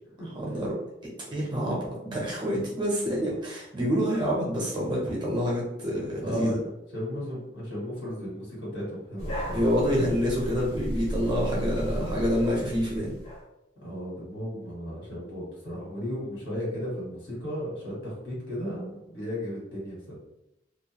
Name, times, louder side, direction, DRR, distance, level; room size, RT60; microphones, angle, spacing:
voice 1, 0.3-0.8 1.3-6.6 9.5-13.1, equal, 25° right, -4 dB, 0.6 m, -27 dB
voice 2, 6.2-6.6 6.9-9.6 13.8-20.0, equal, 75° left, -5 dB, 1.4 m, -35 dB
sound 1, 9.2-13.4, equal, 35° left, 0.6 m, -34 dB
2.4 x 2.2 x 2.8 m, 0.87 s
head